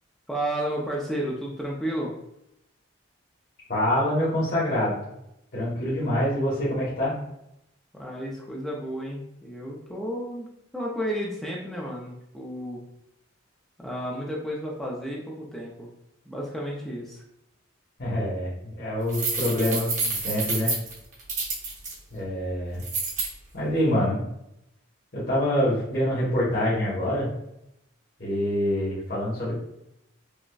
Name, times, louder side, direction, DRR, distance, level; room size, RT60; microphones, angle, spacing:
voice 1, 0.3-2.2 7.9-10.5 10.7-12.8 13.8-15.9 16.3-17.2, equal, ahead, -4 dB, 0.4 m, -32 dB
voice 2, 3.7-5.0 5.5-7.1 18.0-20.7 22.1-22.8 23.5-24.2 25.1-27.3 28.2-29.5, left 1 dB, 50° left, -8 dB, 1.1 m, -25 dB
sound 1, 19.1-21.9 22.8-23.3, right 3 dB, 40° right, 1.0 m, -28 dB
4.9 x 2.1 x 2.3 m, 0.83 s
head